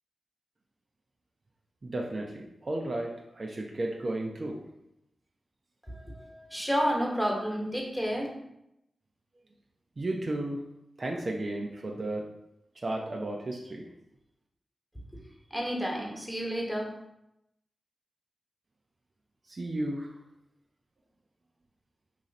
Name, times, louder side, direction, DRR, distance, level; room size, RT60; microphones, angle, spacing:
voice 1, 1.8-4.6 10.0-10.6 11.0-12.3 12.8-13.9 19.5-20.2, right 1 dB, 50° right, 0 dB, 0.5 m, -33 dB
voice 2, 5.9-8.3 15.5-16.9, equal, ahead, -2 dB, 1.2 m, -30 dB
3.1 x 2.5 x 4.0 m, 0.84 s
cardioid pair, 40°, 0 cm